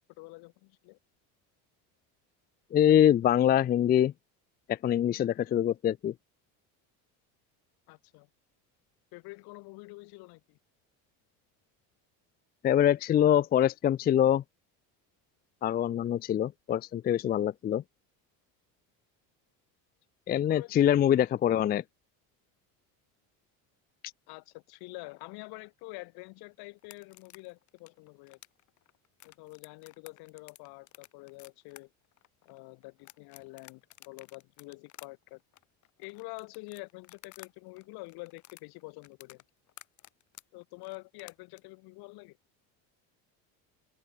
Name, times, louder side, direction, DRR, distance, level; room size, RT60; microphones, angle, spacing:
voice 1, 0.2-1.0 7.9-8.3 9.1-10.6 20.4-21.3 24.3-28.4 29.2-31.9 32.5-35.4 36.0-39.4 40.5-42.4, left 25 dB, 65° left, 1.9 m, -47 dB
voice 2, 2.7-4.1 4.7-6.1 12.6-14.4 15.6-17.8 20.3-21.8, left 10 dB, 25° left, 0.4 m, -24 dB
sound 1, 26.8-37.5 37.8-41.6, left 14 dB, 45° left, 2.7 m, -53 dB
open air
cardioid pair, 140°, 40 cm